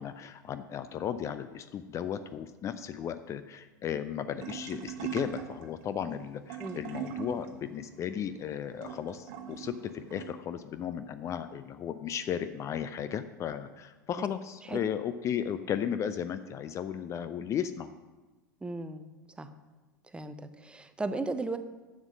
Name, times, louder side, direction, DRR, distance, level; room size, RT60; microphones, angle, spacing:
voice 1, 0.0-17.9, left 9 dB, 30° left, 11 dB, 0.5 m, -35 dB
sound 1, 4.4-10.3, right 7 dB, 50° right, 1.1 m, -41 dB
voice 2, 18.6-19.1 19.4-19.5 20.1-21.6, right 3 dB, 10° right, 10 dB, 0.7 m, -36 dB
11.0 x 7.3 x 6.2 m, 1.2 s
figure-of-eight pair, 85°, 10 cm